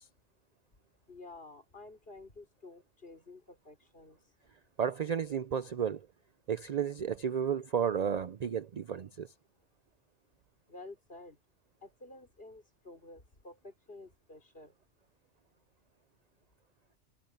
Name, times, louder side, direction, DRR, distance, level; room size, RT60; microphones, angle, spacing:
voice 1, 1.1-4.3 10.7-11.4 11.8-14.7, left 2 dB, 50° left, 4.3 m, -51 dB
voice 2, 4.8-6.0 6.5-9.3, right 8 dB, 55° right, 0.4 m, -32 dB
omnidirectional pair, 1.3 m